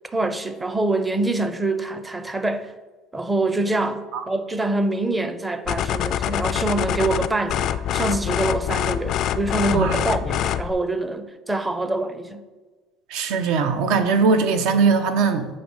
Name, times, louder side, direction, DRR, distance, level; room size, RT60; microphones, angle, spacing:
voice 1, 0.1-2.7 3.1-12.4, right 2 dB, 15° right, 0.5 m, -25 dB
sound 1, 5.7-10.7, left 11 dB, 60° left, 0.3 m, -25 dB
voice 2, 13.1-15.5, right 5 dB, 75° right, 0.7 m, -20 dB
7.8 x 3.1 x 6.2 m
supercardioid pair, 110°, 0 cm